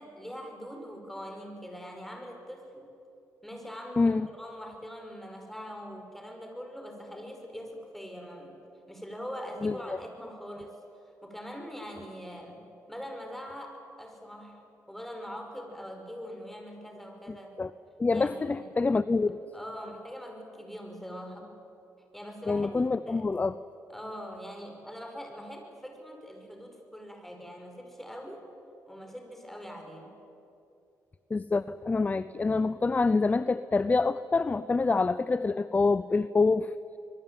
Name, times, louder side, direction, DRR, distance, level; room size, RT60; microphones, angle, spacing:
voice 1, 0.0-2.9 3.4-8.6 8.9-10.8 11.2-14.6 14.9-17.6 18.1-18.7 19.5-21.5 22.1-22.7 23.1-23.3 23.9-28.5 28.9-30.2, equal, 5° left, 3 dB, 5.3 m, -42 dB
voice 2, 4.0-4.3 9.6-9.7 17.6-17.7 18.0-19.4 22.5-23.5 31.3-36.7, left 3 dB, 25° left, 15 dB, 0.6 m, -26 dB
24.0 x 22.0 x 9.2 m, 2.7 s
cardioid pair, 95°, 6 cm